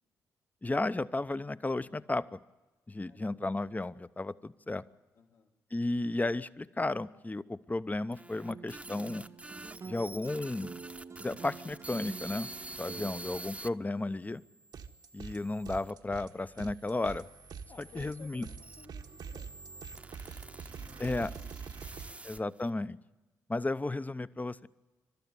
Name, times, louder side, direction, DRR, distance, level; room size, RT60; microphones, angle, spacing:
voice 1, 0.6-2.4 2.9-4.8 5.7-9.2 9.8-10.7 11.2-12.5 12.8-14.4 15.1-17.3 18.0-18.5 21.0-21.3 22.3-23.0 23.5-24.7, left 2 dB, 20° left, 15 dB, 0.8 m, -33 dB
voice 2, 3.1-3.6 5.1-5.5 17.7-22.5, left 6 dB, 75° left, -2 dB, 3.4 m, -59 dB
sound 1, 7.9-13.7 14.3-15.9 16.7-22.7, right 2 dB, 15° right, 0.9 m, -48 dB
sound 2, 8.5-13.4, right 5 dB, 40° right, 0.7 m, -47 dB
sound 3, 14.7-15.4 15.6-22.1, right 6 dB, 65° right, 1.2 m, -45 dB
27.0 x 12.5 x 9.6 m, 1.2 s
hypercardioid pair, 40°, 8 cm